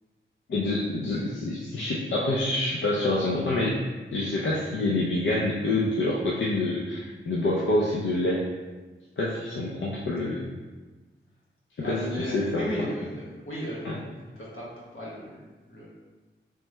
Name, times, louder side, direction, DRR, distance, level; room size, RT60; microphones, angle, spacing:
voice 1, 0.5-3.8 4.1-8.4 9.2-10.5 11.8-12.6 13.8-13.9, left 2 dB, 65° left, -5 dB, 0.5 m, -27 dB
voice 2, 11.8-14.0 14.4-15.9, equal, 85° left, -7 dB, 1.3 m, -35 dB
3.3 x 3.1 x 3.2 m, 1.3 s
wide cardioid pair, 110°, 21 cm